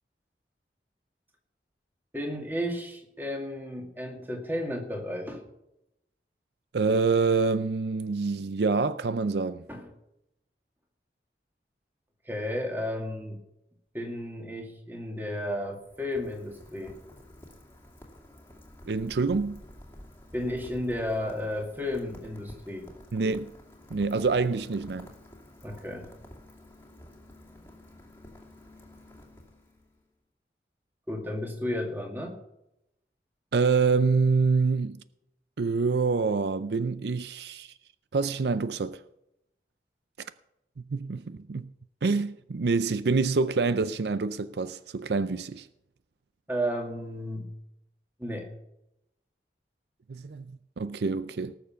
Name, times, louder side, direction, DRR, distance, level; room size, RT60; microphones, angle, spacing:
voice 1, 2.1-5.4 9.7-9.8 12.3-13.4 13.9-17.0 20.3-22.9 25.6-26.1 31.1-32.4 46.5-47.5 48.2-48.5, left 1 dB, 10° right, 2.3 m, -33 dB
voice 2, 6.7-9.7 18.9-19.6 23.1-23.5 23.9-25.1 33.5-35.0 35.6-37.7 38.1-39.0 40.2-40.3 40.9-41.7 42.0-45.7 50.1-51.5, right 4 dB, 75° right, 0.5 m, -26 dB
Rain, 15.3-30.0, left 1 dB, 15° left, 2.3 m, -50 dB
18.5 x 7.0 x 5.8 m
head